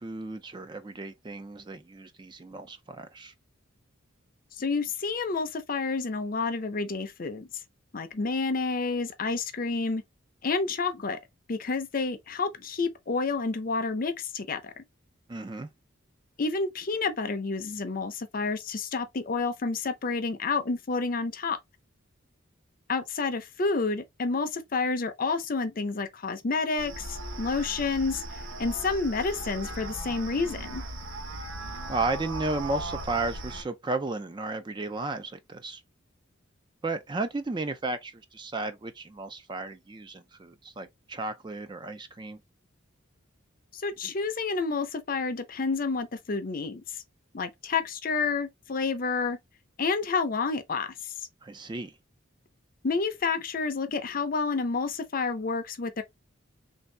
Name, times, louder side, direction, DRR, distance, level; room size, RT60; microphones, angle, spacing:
voice 1, 0.0-3.3 15.3-15.7 31.9-35.8 36.8-42.4 51.4-51.9, right 3 dB, 20° right, 0.3 m, -34 dB
voice 2, 4.6-7.5 7.9-10.0 10.4-11.2 11.5-14.8 16.4-21.6 22.9-30.8 43.7-47.0 47.3-49.4 49.8-51.1 52.8-56.0, left 4 dB, 45° left, 0.5 m, -29 dB
sound 1, 26.8-33.6, right 1 dB, 75° right, 0.8 m, -38 dB
3.3 x 2.7 x 3.2 m
head